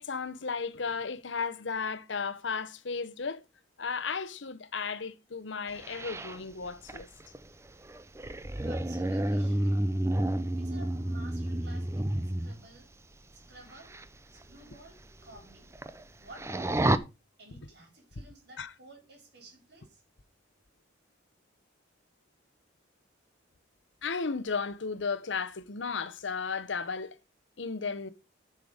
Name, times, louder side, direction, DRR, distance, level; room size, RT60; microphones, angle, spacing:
voice 1, 0.0-3.4 3.8-7.1 18.6-18.7 24.0-27.2 27.6-28.1, left 5 dB, 75° left, 0.9 m, -34 dB
sound 1, 5.8-12.6 13.7-14.0 14.4-14.5 15.0-15.1 15.3-16.0 16.3-17.0, right 1 dB, 15° right, 0.5 m, -30 dB
voice 2, 8.5-9.8 10.5-12.9 13.3-14.0 14.3-15.7 16.2-17.1 17.4-20.0, right 2 dB, 60° right, 4.5 m, -53 dB
11.0 x 5.8 x 5.0 m
head